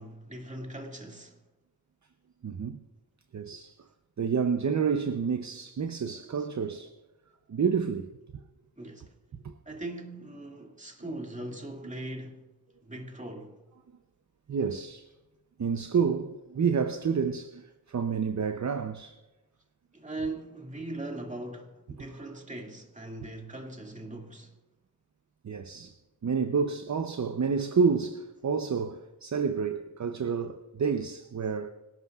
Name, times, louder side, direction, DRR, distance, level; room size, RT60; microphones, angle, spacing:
voice 1, 0.0-1.4 8.8-9.1 9.7-12.5 12.8-13.6 19.9-24.6, right 2 dB, 20° right, 2.2 m, -40 dB
voice 2, 2.4-2.8 3.3-3.8 4.2-6.9 7.5-8.1 9.4-9.5 14.5-15.1 15.6-19.2 25.4-25.9 26.2-31.7, right 6 dB, 50° right, 0.7 m, -29 dB
25.5 x 12.0 x 2.4 m
wide cardioid pair, 75°, 37 cm